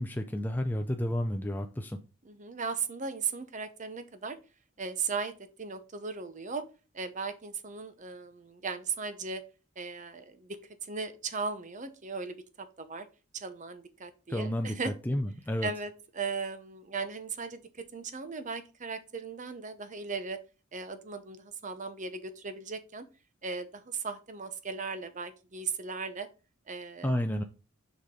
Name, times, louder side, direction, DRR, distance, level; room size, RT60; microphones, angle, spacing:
voice 1, 0.0-2.0 14.3-15.7 27.0-27.4, left 1 dB, 10° left, 5 dB, 0.5 m, -31 dB
voice 2, 2.2-4.4 4.8-5.3 5.6-6.6 6.9-9.4 9.8-10.6 10.9-12.4 12.8-13.1 13.4-14.9 15.6-17.6 17.9-20.4 20.7-23.1 23.4-26.3 26.7-27.1, right 5 dB, 40° right, 10 dB, 0.8 m, -37 dB
6.9 x 5.1 x 3.8 m, 0.31 s
head